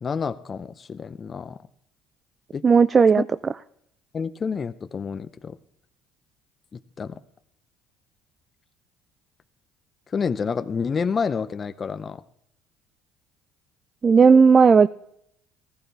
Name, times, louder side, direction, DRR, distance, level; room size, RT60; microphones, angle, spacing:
voice 1, 0.0-1.6 2.5-2.6 3.2-3.3 4.1-5.6 7.0-7.1 10.1-12.2, left 6 dB, 35° left, 12 dB, 0.6 m, -28 dB
voice 2, 2.6-3.2 14.0-14.9, right 5 dB, 35° right, 15 dB, 0.4 m, -14 dB
15.5 x 14.0 x 3.4 m, 0.73 s
hypercardioid pair, 70°, 0 cm